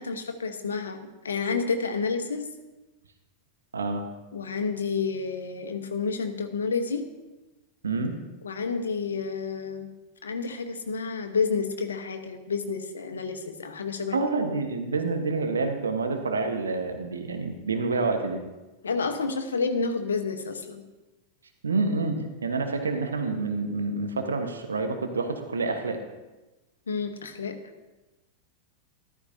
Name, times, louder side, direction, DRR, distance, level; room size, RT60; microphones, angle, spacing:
voice 1, 0.0-2.5 4.3-7.0 8.4-9.9 10.2-14.2 18.8-20.8 26.9-27.6, left 4 dB, 70° left, 7 dB, 1.1 m, -30 dB
voice 2, 3.7-4.0 7.8-8.1 14.1-18.4 21.6-26.0, right 3 dB, 70° right, 5 dB, 1.1 m, -28 dB
14.0 x 12.5 x 2.7 m, 1.1 s
figure-of-eight pair, 90°, 0 cm